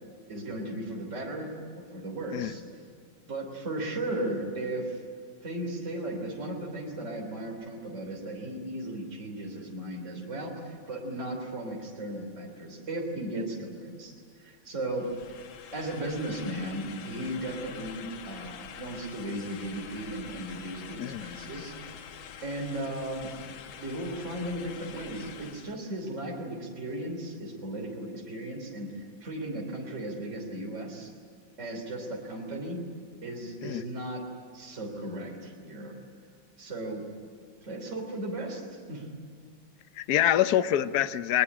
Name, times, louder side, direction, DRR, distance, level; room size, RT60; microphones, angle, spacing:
voice 1, 0.3-2.6 3.2-5.0 5.4-14.1 14.4-15.1 15.7-21.7 22.4-23.3 23.8-31.1 31.6-32.8 33.2-34.2 34.5-35.9 36.6-37.0 37.6-38.6 38.9-39.1, right 1 dB, 35° right, 0 dB, 3.6 m, -36 dB
sound 1, 14.9-25.8, left 8 dB, 80° left, 1.8 m, -45 dB
voice 2, 40.0-41.4, left 11 dB, 60° left, 12 dB, 1.2 m, -25 dB
22.5 x 21.0 x 9.9 m, 2.1 s
omnidirectional pair, 2.2 m